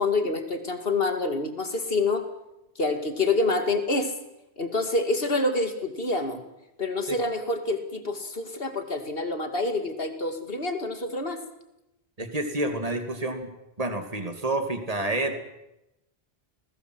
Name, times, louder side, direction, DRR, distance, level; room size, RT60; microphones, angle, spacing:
voice 1, 0.0-2.2 2.8-4.1 4.6-6.4 6.8-11.4, left 2 dB, 65° left, 7 dB, 2.8 m, -27 dB
voice 2, 12.2-13.5 13.8-15.4, right 2 dB, 35° right, 6 dB, 2.9 m, -29 dB
29.0 x 20.0 x 8.0 m, 0.89 s
omnidirectional pair, 1.1 m